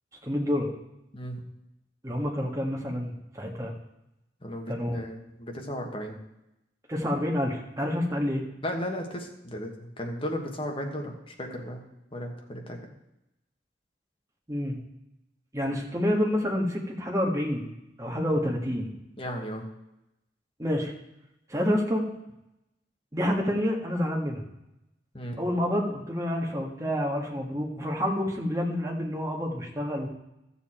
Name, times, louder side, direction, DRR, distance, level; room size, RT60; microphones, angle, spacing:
voice 1, 0.2-0.7 2.0-3.7 4.7-5.0 6.9-8.4 14.5-14.8 15.5-17.7 18.0-18.9 20.6-20.9 21.5-22.0 23.1-24.4 25.4-30.1, equal, 20° right, 0 dB, 1.6 m, -28 dB
voice 2, 4.4-6.2 8.6-11.8 12.1-12.9 19.2-19.6 25.1-25.4, equal, 30° left, 2 dB, 1.4 m, -35 dB
13.5 x 7.1 x 4.4 m, 0.89 s
head